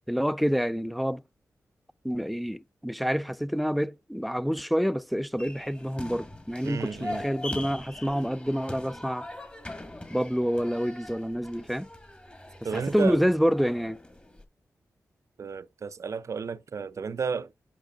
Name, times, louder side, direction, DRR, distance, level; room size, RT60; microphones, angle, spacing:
voice 1, 0.1-1.2 2.0-9.3 10.1-11.9 12.7-14.0, equal, ahead, 0.4 m, -27 dB
sound 1, 5.4-14.4, left 1 dB, 20° left, 1.6 m, -41 dB
voice 2, 6.6-7.3 12.6-13.2 15.4-17.7, right 5 dB, 60° right, 0.5 m, -32 dB
10.0 x 5.9 x 2.5 m
cardioid pair, 65°, 6 cm